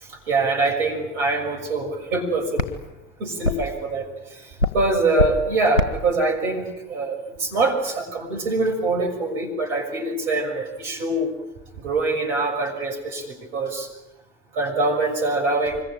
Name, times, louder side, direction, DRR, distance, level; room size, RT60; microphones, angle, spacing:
voice 1, 0.3-2.7 3.2-4.1 4.7-11.3 11.8-13.9 14.6-15.8, right 3 dB, 70° right, 2 dB, 6.3 m, -24 dB
sound 1, 2.6-8.0, left 1 dB, 85° left, 1.7 m, -29 dB
25.5 x 22.5 x 9.0 m, 0.99 s
figure-of-eight pair, 60°, 37 cm